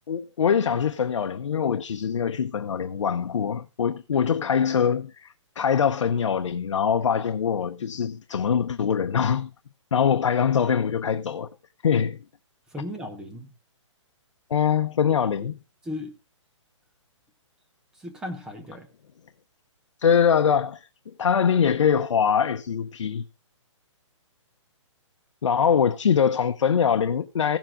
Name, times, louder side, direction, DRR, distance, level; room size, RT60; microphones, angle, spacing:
voice 1, 0.1-9.5 9.9-11.5 11.8-12.2 14.5-15.5 20.0-20.8 21.2-23.2 25.4-27.6, left 7 dB, 70° left, 0.8 m, -23 dB
voice 2, 12.7-13.5 15.1-15.2 15.8-16.1 18.0-18.9, left 1 dB, 5° right, 0.7 m, -35 dB
16.0 x 7.4 x 3.6 m
hypercardioid pair, 170°, 16 cm